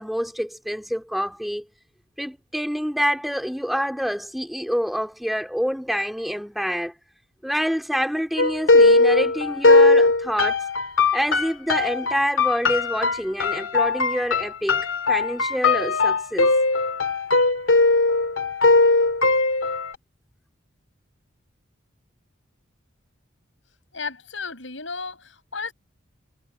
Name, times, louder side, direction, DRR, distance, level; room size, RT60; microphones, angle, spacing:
voice 1, 0.0-1.6 2.2-6.9 7.4-10.6 11.1-16.5, equal, ahead, 3.0 m, -27 dB
sound 1, 8.4-19.9, left 3 dB, 90° left, 2.2 m, -19 dB
voice 2, 23.9-25.7, left 4 dB, 75° left, 6.4 m, -33 dB
head